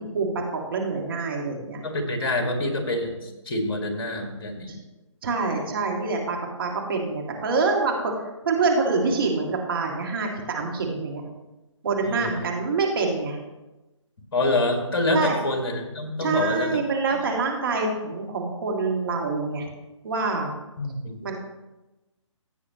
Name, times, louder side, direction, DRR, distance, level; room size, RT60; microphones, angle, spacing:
voice 1, 0.0-1.8 4.7-4.8 5.2-11.2 11.8-13.4 15.1-15.4 16.2-19.7 20.0-20.5 21.2-21.3, right 4 dB, 45° right, 0 dB, 1.9 m, -26 dB
voice 2, 1.8-4.7 12.0-12.3 14.3-16.8 17.1-17.2 20.8-21.2, left 2 dB, 50° left, 4 dB, 2.0 m, -26 dB
15.5 x 8.3 x 3.0 m, 1.0 s
figure-of-eight pair, 140°, 16 cm